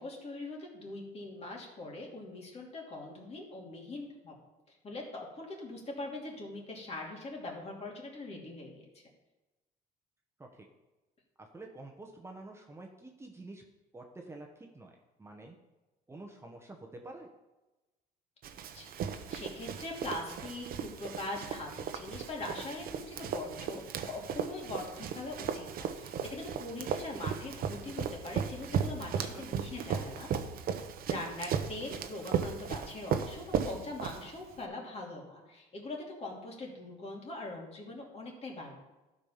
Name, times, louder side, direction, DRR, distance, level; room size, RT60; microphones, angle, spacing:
voice 1, 0.0-4.4 4.8-8.8 18.7-30.3 31.1-38.7, left 2 dB, 40° left, -1 dB, 2.8 m, -42 dB
voice 2, 11.4-13.6 13.9-15.6 16.1-17.3 29.1-29.4, right 2 dB, 15° right, 1 dB, 1.1 m, -48 dB
Run, 18.4-34.6, right 7 dB, 60° right, 0.9 m, -36 dB
12.5 x 5.4 x 5.7 m, 1.1 s
cardioid pair, 110°, 17 cm